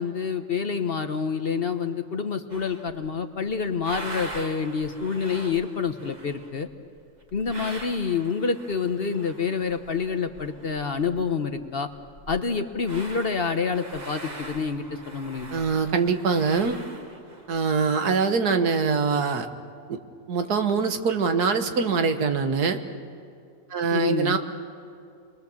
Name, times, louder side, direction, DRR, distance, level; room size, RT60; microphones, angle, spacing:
voice 1, 0.0-6.7 7.3-11.9 12.3-15.6 23.9-24.4, left 5 dB, 45° left, 9 dB, 1.0 m, -27 dB
sound 1, 2.5-3.1 3.5-11.3 11.5-11.6 11.9-17.6, right 1 dB, 30° right, 1.8 m, -43 dB
voice 2, 15.5-16.8 17.5-19.5 19.9-20.0 20.3-22.8 23.7-24.4, right 5 dB, 90° right, 8 dB, 1.9 m, -23 dB
29.5 x 22.0 x 7.1 m, 2.4 s
omnidirectional pair, 1.6 m